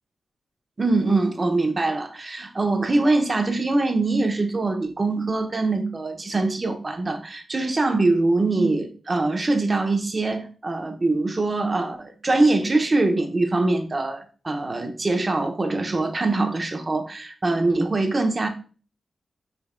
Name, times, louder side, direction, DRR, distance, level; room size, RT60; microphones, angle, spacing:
voice 1, 0.8-18.5, right 2 dB, 40° right, 0.8 m, -23 dB
5.2 x 3.5 x 2.2 m
cardioid pair, 45°, 0 cm